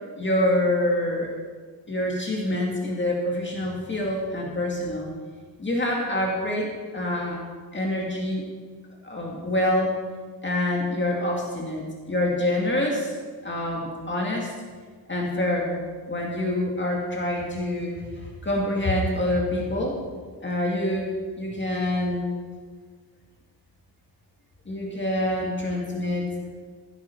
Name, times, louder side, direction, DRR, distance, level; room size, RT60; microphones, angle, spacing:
voice 1, 0.2-1.3 1.9-5.1 5.6-6.7 6.9-7.4 7.7-8.4 9.0-10.0 10.4-13.1 13.4-14.5 15.1-15.8 16.1-18.1 18.4-20.0 20.4-21.1 21.4-22.3 24.7-26.3, left 1 dB, 25° left, -1 dB, 2.0 m, -26 dB
16.0 x 11.5 x 4.4 m, 1.5 s
wide cardioid pair, 170°, 43 cm